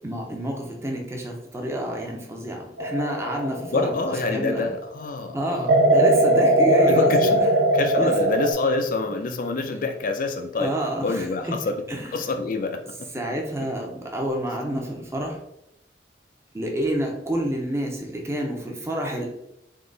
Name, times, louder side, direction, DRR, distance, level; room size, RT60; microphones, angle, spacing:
voice 1, 0.0-4.7 5.3-7.6 7.9-8.1 10.6-11.6 11.9-12.1 13.1-15.4 16.5-19.3, right 1 dB, 15° right, 1 dB, 0.7 m, -29 dB
sound 1, 2.8-4.6 5.7-8.5, right 1 dB, 70° right, 0.6 m, -20 dB
voice 2, 3.7-5.7 6.8-7.3 7.7-10.7 11.0-11.8 12.1-12.8, left 3 dB, 50° left, 7 dB, 0.5 m, -26 dB
3.7 x 2.9 x 3.9 m, 0.83 s
head